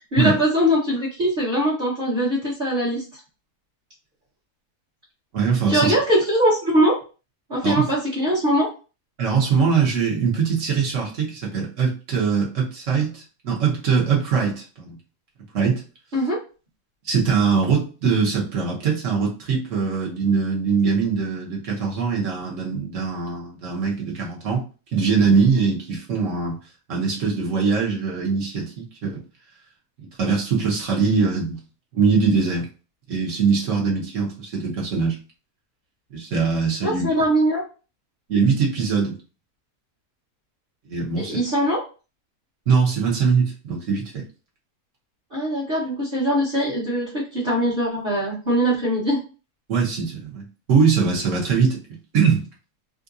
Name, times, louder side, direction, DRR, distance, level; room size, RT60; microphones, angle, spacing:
voice 1, 0.1-3.0 5.7-7.0 7.5-8.7 16.1-16.4 36.8-37.6 41.2-41.8 45.3-49.2, equal, 35° right, -8 dB, 1.2 m, -21 dB
voice 2, 5.3-5.9 7.6-7.9 9.2-15.0 15.5-15.8 17.0-24.6 24.9-26.6 26.9-29.2 30.0-31.6 31.9-32.6 33.1-35.2 36.1-37.1 38.3-39.2 40.8-41.4 42.7-44.2 49.7-52.5, right 5 dB, 55° right, -2 dB, 1.3 m, -22 dB
3.8 x 2.5 x 2.6 m, 0.34 s
omnidirectional pair, 1.6 m